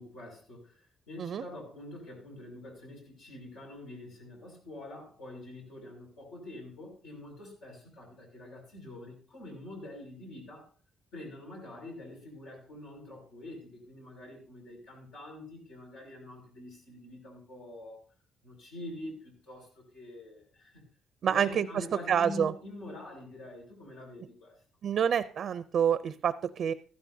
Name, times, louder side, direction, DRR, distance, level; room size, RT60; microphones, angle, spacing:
voice 1, 0.0-10.7 11.1-18.0 18.4-20.8 21.2-24.6, left 1 dB, 90° left, -2 dB, 6.3 m, -45 dB
voice 2, 21.2-21.8 22.1-22.5 24.8-26.7, right 8 dB, 65° right, 14 dB, 0.5 m, -27 dB
14.5 x 13.0 x 2.7 m, 0.41 s
cardioid pair, 90°, 0 cm